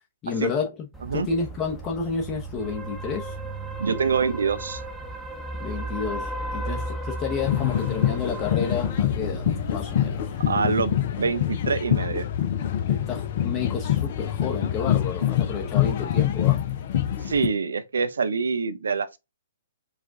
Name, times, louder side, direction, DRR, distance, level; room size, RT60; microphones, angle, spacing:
voice 1, 0.2-3.3 5.6-10.2 12.9-16.6, left 5 dB, 25° left, 1.0 m, -30 dB
sound 1, 0.9-10.5, right 1 dB, ahead, 0.9 m, -35 dB
voice 2, 3.8-4.8 10.5-12.3 17.2-19.2, right 5 dB, 65° right, 0.5 m, -25 dB
sound 2, 7.4-17.5, left 11 dB, 45° left, 0.5 m, -25 dB
4.7 x 2.4 x 3.7 m
figure-of-eight pair, 120°, 0 cm